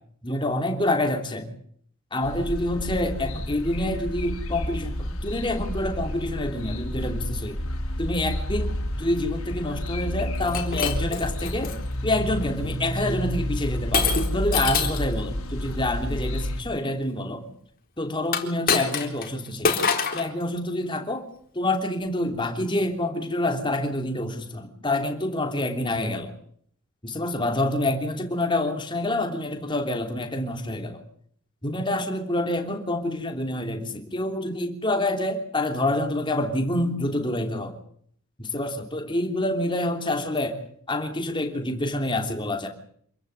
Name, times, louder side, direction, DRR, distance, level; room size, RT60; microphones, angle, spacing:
voice 1, 0.2-1.5 2.1-7.6 8.0-11.7 12.0-17.4 18.0-19.8 20.1-21.2 21.5-26.3 27.0-31.0 31.6-37.8 38.4-40.6 40.9-42.7, left 1 dB, 20° left, 4 dB, 3.2 m, -27 dB
sound 1, 2.2-16.6, left 1 dB, 75° left, 4.0 m, -30 dB
Shatter, 10.4-11.8 12.4-12.7 13.9-15.1 18.2-19.3 19.6-20.3, left 5 dB, 40° left, 3.9 m, -25 dB
27.5 x 15.0 x 9.5 m, 0.65 s
head